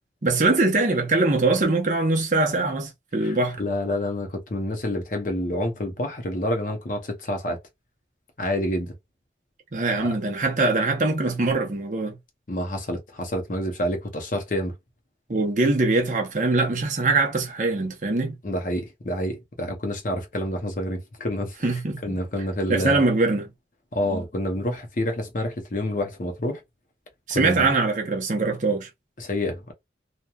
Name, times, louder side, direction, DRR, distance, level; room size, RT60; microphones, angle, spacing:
voice 1, 0.2-3.6 9.7-12.2 15.3-18.3 21.6-22.2 22.7-23.5 27.3-28.9, right 3 dB, 45° right, 0.7 m, -22 dB
voice 2, 3.2-7.6 8.4-8.9 10.0-10.1 12.5-14.7 18.4-23.0 23.9-26.6 27.3-27.7 29.2-29.7, left 1 dB, 45° left, 0.7 m, -28 dB
2.9 x 2.2 x 2.3 m
head